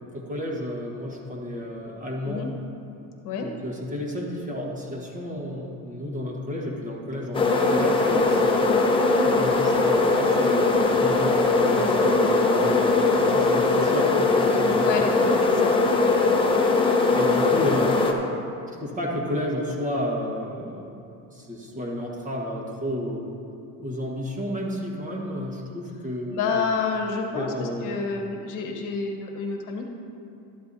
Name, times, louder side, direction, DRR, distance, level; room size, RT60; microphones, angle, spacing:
voice 1, 0.1-2.5 3.4-8.6 9.4-14.9 17.1-18.0 18.8-21.0 21.3-23.3 23.8-26.6 27.3-28.0, left 1 dB, 20° right, -2 dB, 1.4 m, -31 dB
sound 1, 7.3-18.1, left 3 dB, 15° left, 0.8 m, -20 dB
voice 2, 8.7-9.0 14.8-15.8 26.3-29.8, left 5 dB, 55° left, 2 dB, 1.3 m, -29 dB
12.5 x 11.5 x 2.7 m, 2.7 s
cardioid pair, 140°, 38 cm